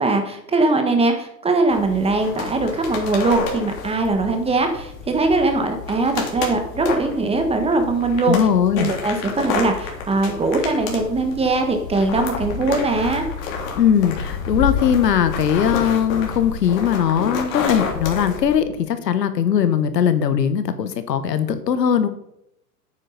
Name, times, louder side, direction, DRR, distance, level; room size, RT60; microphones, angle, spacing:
voice 1, 0.0-8.4 8.7-13.2, right 3 dB, 10° right, 5 dB, 1.4 m, -21 dB
sound 1, 1.7-18.6, left 5 dB, 50° left, 3.0 m, -29 dB
voice 2, 8.2-8.9 13.7-22.1, left 8 dB, 75° left, 11 dB, 1.4 m, -19 dB
9.6 x 9.0 x 4.1 m, 0.78 s
hypercardioid pair, 115°, 50 cm